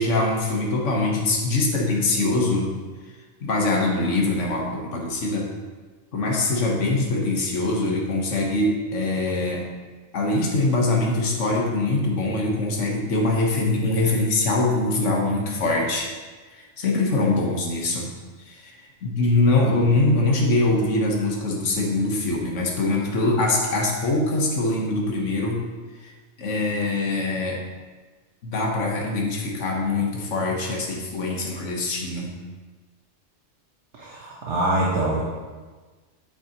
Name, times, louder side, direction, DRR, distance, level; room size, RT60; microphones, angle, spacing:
voice 1, 0.0-2.7 3.4-5.5 6.1-9.6 10.1-16.1 16.5-18.1 18.4-18.8 19.0-25.6 26.0-26.1 26.4-27.6 28.4-32.3, left 2 dB, 70° left, -1 dB, 1.5 m, -23 dB
voice 2, 34.0-35.2, right 1 dB, 65° right, -4 dB, 1.4 m, -24 dB
8.4 x 7.5 x 2.9 m, 1.4 s
omnidirectional pair, 1.3 m